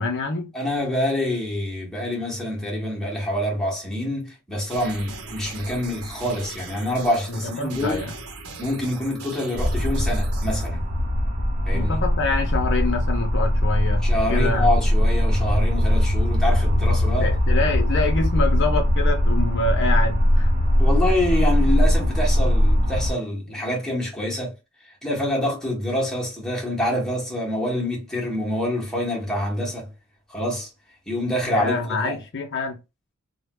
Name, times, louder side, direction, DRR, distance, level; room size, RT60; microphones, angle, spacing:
voice 1, 0.0-0.5 7.3-8.1 11.7-14.0 14.3-14.7 17.2-20.5 31.5-32.8, left 3 dB, 55° left, 0.6 m, -26 dB
voice 2, 0.5-8.1 8.6-10.9 11.6-12.0 14.0-17.3 20.8-24.5 25.0-29.9 30.3-30.7 31.1-32.2, left 1 dB, 5° left, 1.3 m, -26 dB
sound 1, 4.7-10.7, right 3 dB, 75° right, 0.8 m, -39 dB
sound 2, 9.5-23.1, equal, 40° right, 1.1 m, -20 dB
3.3 x 2.3 x 3.0 m
head